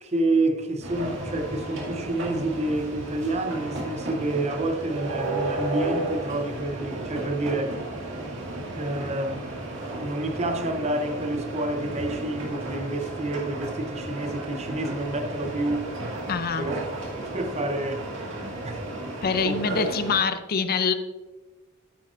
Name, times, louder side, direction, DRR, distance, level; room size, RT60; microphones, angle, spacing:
voice 1, 0.0-7.8 8.7-9.5 10.0-15.9 16.5-16.9 17.1-18.1 18.4-18.8 19.4-19.8, right 2 dB, 30° right, 0.7 m, -28 dB
sound 1, 0.8-20.2, right 2 dB, 60° right, 2.2 m, -33 dB
voice 2, 16.3-16.7 19.2-20.9, left 5 dB, 45° left, 0.5 m, -25 dB
10.5 x 8.6 x 2.5 m
head